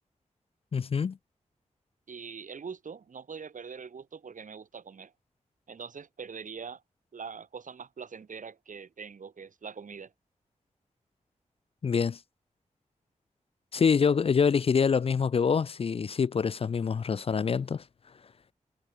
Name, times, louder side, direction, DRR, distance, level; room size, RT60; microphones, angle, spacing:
voice 1, 0.7-1.2 11.8-12.2 13.7-17.8, left 6 dB, 45° left, 0.4 m, -25 dB
voice 2, 2.1-5.1 5.7-6.8 7.1-10.1, right 6 dB, 70° right, 2.2 m, -43 dB
cardioid pair, 55°, 14 cm